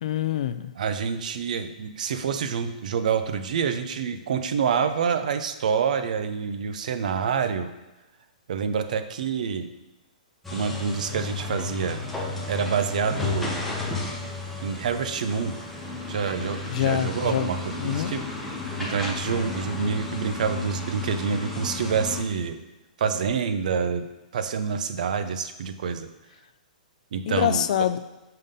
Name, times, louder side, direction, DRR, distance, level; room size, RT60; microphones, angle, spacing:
voice 1, 0.0-0.7 16.7-17.5 17.8-18.1 27.3-28.0, left 11 dB, 55° left, 12 dB, 0.3 m, -25 dB
voice 2, 0.8-7.7 8.5-9.7 10.5-12.0 12.5-13.6 14.6-15.6 16.1-18.2 18.8-22.6 23.0-26.1 27.1-27.6, right 6 dB, 60° right, 10 dB, 0.5 m, -27 dB
sound 1, 10.4-22.2, left 3 dB, ahead, 0.8 m, -33 dB
5.5 x 3.7 x 5.4 m, 1.1 s
hypercardioid pair, 160°, 5 cm